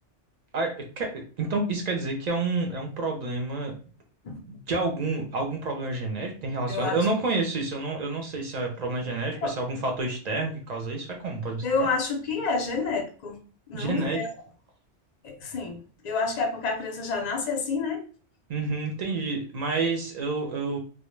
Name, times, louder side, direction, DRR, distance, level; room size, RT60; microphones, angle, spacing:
voice 1, 0.5-3.7 4.3-11.9 13.7-14.3 18.5-20.8, right 3 dB, 55° right, 2 dB, 0.5 m, -29 dB
voice 2, 6.7-7.0 9.4-9.5 11.6-13.4 13.7-14.3 15.2-18.0, left 4 dB, 55° left, 3 dB, 0.5 m, -29 dB
2.1 x 2.1 x 3.0 m, 0.40 s
omnidirectional pair, 1.2 m